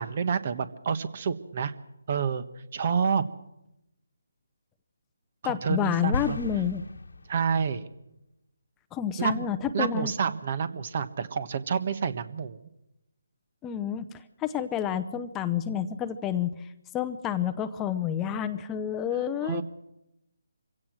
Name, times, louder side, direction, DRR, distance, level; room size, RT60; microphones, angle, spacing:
voice 1, 0.0-1.7 2.1-2.4 2.7-3.2 5.4-6.4 7.3-7.9 9.2-9.5 9.7-12.6 19.4-19.6, right 6 dB, 45° right, 13 dB, 1.4 m, -28 dB
voice 2, 5.4-6.8 8.9-10.1 13.6-14.1 14.4-16.7 16.9-19.6, left 9 dB, 15° left, 9 dB, 0.8 m, -29 dB
sound 1, 6.1-7.7, left 2 dB, 80° left, 1.5 m, -35 dB
24.5 x 16.5 x 6.4 m, 0.86 s
figure-of-eight pair, 150°, 0 cm